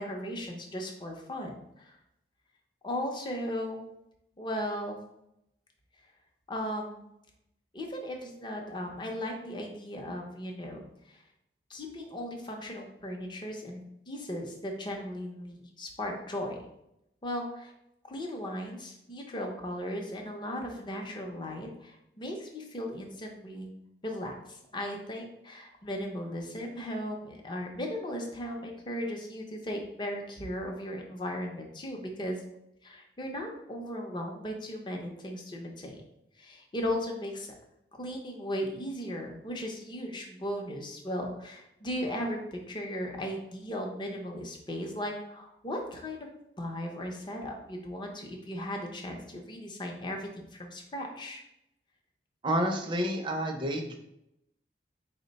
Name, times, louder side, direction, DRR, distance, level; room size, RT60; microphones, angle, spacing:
voice 1, 0.0-2.0 2.8-3.8 4.4-5.0 6.5-7.0 7.7-11.2 11.7-16.6 17.2-17.7 18.0-23.7 24.0-32.5 32.8-36.0 36.4-37.5 37.9-46.3 46.6-51.4, equal, 25° left, 2 dB, 0.6 m, -37 dB
voice 2, 52.4-53.9, equal, 25° right, 2 dB, 0.5 m, -29 dB
4.3 x 2.1 x 3.9 m, 0.80 s
head